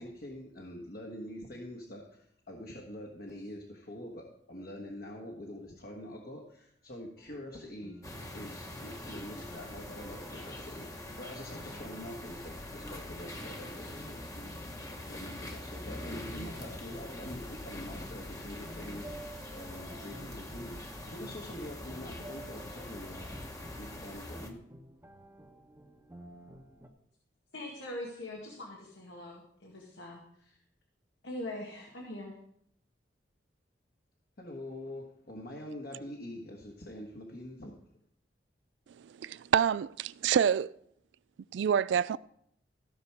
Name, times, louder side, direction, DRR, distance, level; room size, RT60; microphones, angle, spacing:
voice 1, 0.0-8.0 8.3-14.6 15.1-19.1 19.5-23.4 23.8-24.6 34.4-37.7, left 1 dB, 60° left, 1.5 m, -45 dB
sound 1, 7.2-15.6 16.4-26.9, right 1 dB, 15° right, 1.0 m, -53 dB
sound 2, 8.0-24.5, left 1 dB, 20° left, 1.1 m, -43 dB
voice 2, 27.5-30.6 31.2-32.4, left 1 dB, 90° left, 1.9 m, -42 dB
voice 3, 39.0-40.7 41.5-42.2, right 8 dB, 85° right, 0.3 m, -27 dB
15.0 x 6.0 x 4.8 m
head